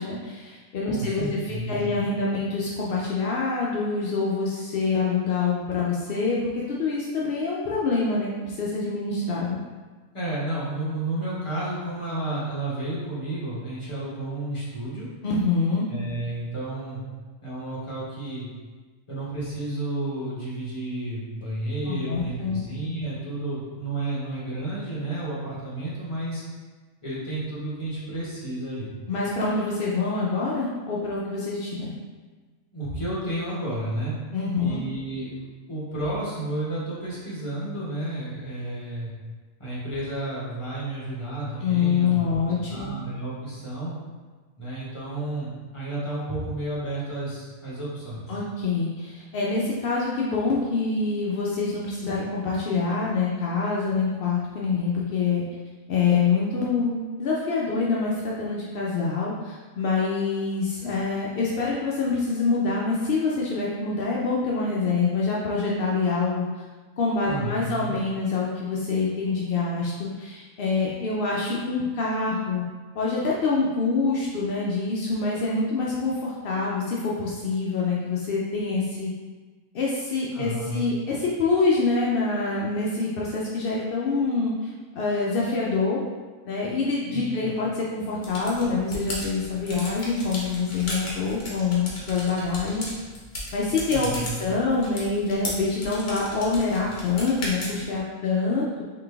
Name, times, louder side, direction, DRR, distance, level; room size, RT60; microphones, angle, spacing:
voice 1, 0.0-9.6 15.2-15.9 21.9-22.6 29.1-31.9 34.3-34.8 41.6-42.9 48.3-55.4 55.9-66.4 67.0-72.6 73.0-79.1 79.7-86.0 86.5-92.8 93.5-98.8, left 4 dB, 70° left, -4 dB, 0.5 m, -26 dB
voice 2, 0.9-2.0 10.1-15.1 15.9-17.0 17.4-18.5 19.1-26.4 27.0-28.9 32.7-34.1 34.6-35.4 35.7-39.1 39.6-43.9 44.6-48.3 67.2-67.9 80.3-80.9 87.1-87.5 93.9-94.4, right 1 dB, 20° left, -8 dB, 1.3 m, -31 dB
sound 1, 88.2-98.0, left 1 dB, 45° left, 1.1 m, -36 dB
3.9 x 3.2 x 3.4 m, 1.4 s
omnidirectional pair, 1.6 m